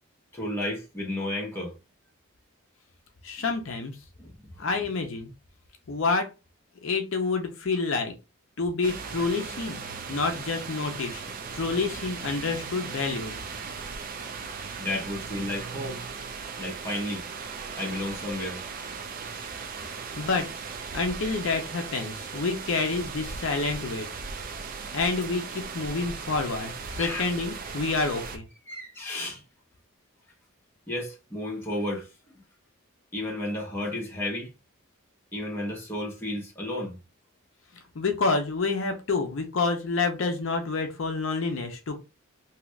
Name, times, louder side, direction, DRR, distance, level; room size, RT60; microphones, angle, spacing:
voice 1, 0.3-1.7 4.2-4.3 4.6-4.7 14.8-16.0 16.6-17.2 17.8-18.6 27.0-27.2 28.7-29.4 30.9-32.1 33.1-34.5 35.3-37.0, left 1 dB, 10° left, 0.9 m, -32 dB
voice 2, 3.2-4.0 4.6-5.3 5.9-6.3 6.8-8.1 8.6-9.8 10.1-11.2 11.5-13.4 20.2-20.5 20.9-24.1 24.9-28.4 37.9-42.0, left 4 dB, 60° left, 0.5 m, -28 dB
sound 1, 8.8-28.4, right 5 dB, 40° right, 0.4 m, -38 dB
2.7 x 2.4 x 3.1 m
head